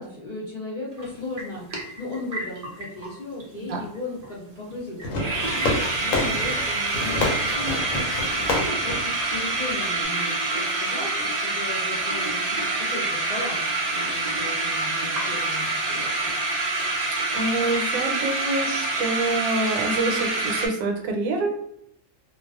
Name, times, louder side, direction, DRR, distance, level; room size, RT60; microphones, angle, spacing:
voice 1, 0.0-1.7 2.0-16.1, left 2 dB, 55° left, -6 dB, 0.5 m, -36 dB
sound 1, 1.0-1.1 1.4-3.1 3.4-3.5 3.7-4.0 4.2-4.3 4.7-4.8 5.0-20.7, right 2 dB, 50° right, 0.4 m, -26 dB
Fireworks, 5.0-10.0, left 2 dB, 75° left, 1.0 m, -29 dB
voice 2, 17.3-21.5, right 2 dB, 80° right, 2 dB, 1.0 m, -26 dB
2.3 x 2.3 x 2.3 m, 0.72 s
omnidirectional pair, 1.5 m